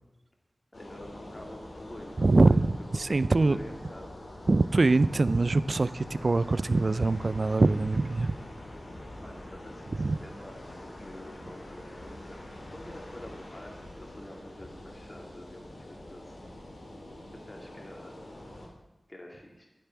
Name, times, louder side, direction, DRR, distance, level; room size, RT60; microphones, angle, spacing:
sound 1, 0.7-18.7, left 1 dB, 80° left, 3.5 m, -45 dB
voice 1, 0.7-2.6 2.9-4.1 9.2-16.5 17.4-18.1 19.1-19.7, left 1 dB, 35° left, -1 dB, 2.5 m, -47 dB
voice 2, 2.2-2.7 3.0-3.6 4.5-8.3 10.0-10.1, right 3 dB, 60° right, 16 dB, 0.5 m, -23 dB
13.5 x 10.5 x 5.9 m, 1.0 s
cardioid pair, 40°, 0 cm